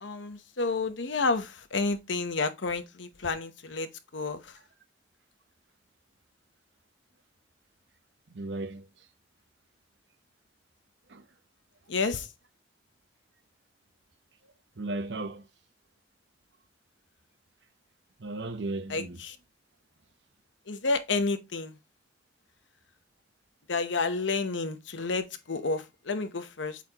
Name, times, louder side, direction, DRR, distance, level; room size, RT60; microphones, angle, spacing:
voice 1, 0.0-3.9 4.1-4.4 11.9-12.3 18.9-19.3 20.7-21.8 23.7-26.8, left 3 dB, 80° left, 0.9 m, -30 dB
voice 2, 8.3-9.1 11.1-11.3 14.8-15.5 18.2-19.2, right 2 dB, 70° right, 0.8 m, -36 dB
8.3 x 4.3 x 2.9 m
head